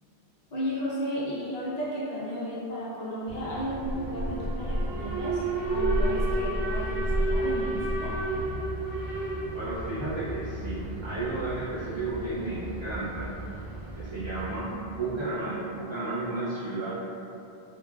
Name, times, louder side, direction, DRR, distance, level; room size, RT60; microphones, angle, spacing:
voice 1, 0.5-8.2, equal, 50° left, -8 dB, 0.6 m, -33 dB
Alarm, 3.3-15.3, right 1 dB, 75° right, 0.8 m, -31 dB
voice 2, 9.5-13.4 14.0-16.9, right 2 dB, 45° right, -11 dB, 0.3 m, -33 dB
3.2 x 2.2 x 2.3 m, 2.7 s
omnidirectional pair, 1.1 m